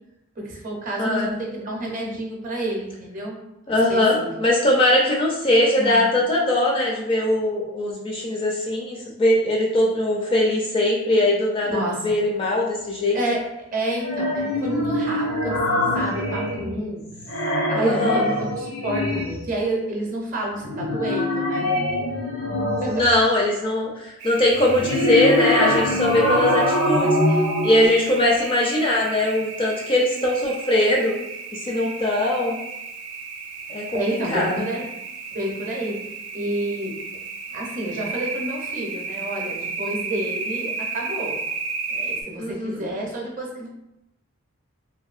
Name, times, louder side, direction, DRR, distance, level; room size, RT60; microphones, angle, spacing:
voice 1, 0.4-3.4 3.7-4.3 5.8-6.0 11.6-12.1 13.1-13.5 13.7-17.0 17.7-21.7 22.8-23.1 33.9-34.8 35.3-36.0 36.3-37.0 37.5-41.4 41.9-43.7, right 1 dB, 35° right, -1 dB, 0.6 m, -29 dB
voice 2, 1.0-1.3 3.7-13.2 17.8-18.2 22.9-27.1 27.6-31.1 31.5-32.5 33.7-34.7 42.4-42.8, left 1 dB, 25° left, -2 dB, 0.3 m, -21 dB
sound 1, 14.0-16.9 17.2-19.5 20.6-23.1 24.6-27.9, left 1 dB, 70° left, 0.7 m, -23 dB
sound 2, 24.2-42.2, right 4 dB, 85° right, 0.4 m, -34 dB
2.6 x 2.6 x 2.4 m, 0.89 s
head